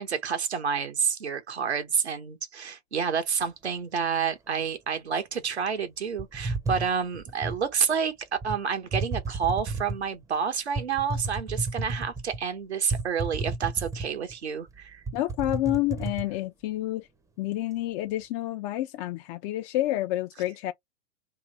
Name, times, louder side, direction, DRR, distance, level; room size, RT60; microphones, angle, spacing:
voice 1, 0.0-15.0, right 6 dB, 85° right, 1.3 m, -29 dB
sound 1, 6.2-7.6 8.4-8.6 8.9-10.1 10.7-12.4 12.9-14.3 14.7-14.8 15.1-16.3, right 3 dB, 10° right, 0.7 m, -32 dB
voice 2, 15.1-17.1 17.4-20.7, left 15 dB, 35° left, 0.5 m, -29 dB
3.5 x 2.6 x 3.0 m
hypercardioid pair, 115°, 32 cm